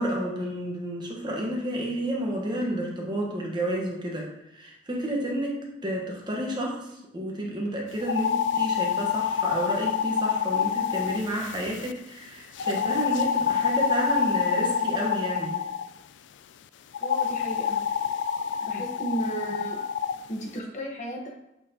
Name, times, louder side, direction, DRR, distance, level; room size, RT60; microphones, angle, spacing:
voice 1, 0.0-15.5 18.7-18.8, right 1 dB, 25° right, -1 dB, 1.2 m, -31 dB
sound 1, 8.0-11.9 12.6-15.9 16.9-20.2, left 7 dB, 75° left, 0.3 m, -27 dB
voice 2, 17.0-17.8 18.6-19.8 20.3-21.3, right 1 dB, 40° left, 0 dB, 1.3 m, -34 dB
8.3 x 4.4 x 2.9 m, 0.89 s
head